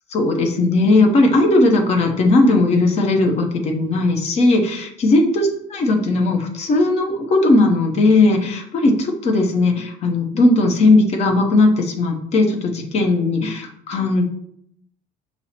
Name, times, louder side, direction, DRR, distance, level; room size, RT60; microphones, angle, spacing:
voice 1, 0.1-14.3, left 2 dB, 40° left, 3 dB, 0.7 m, -17 dB
5.5 x 2.0 x 4.2 m, 0.72 s
cardioid pair, 155°, 17 cm